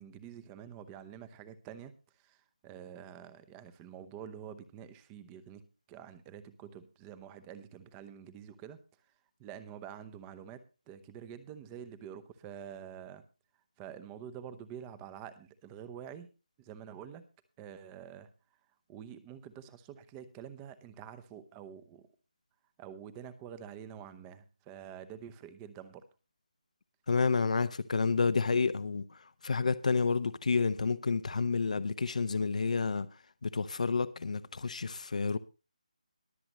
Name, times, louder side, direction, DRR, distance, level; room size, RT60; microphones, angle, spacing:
voice 1, 0.0-1.9 2.2-8.8 9.4-13.2 13.8-16.3 16.6-17.2 17.6-18.3 18.9-22.1 22.8-26.1, right 9 dB, 10° right, 0.8 m, -47 dB
voice 2, 27.1-33.1 33.4-35.4, left 4 dB, 60° left, 0.8 m, -30 dB
22.0 x 7.8 x 3.0 m
figure-of-eight pair, 170°, 4 cm